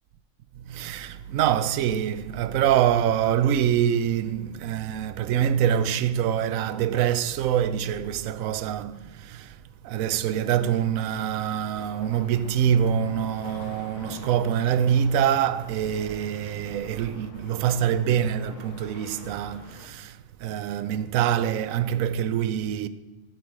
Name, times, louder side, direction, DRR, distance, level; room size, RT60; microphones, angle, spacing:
voice 1, 0.6-9.6 9.8-22.9, right 9 dB, 70° right, 0.9 m, -25 dB
sound 1, 11.8-19.9, left 5 dB, 80° left, 1.5 m, -46 dB
16.0 x 8.8 x 3.1 m
omnidirectional pair, 1.7 m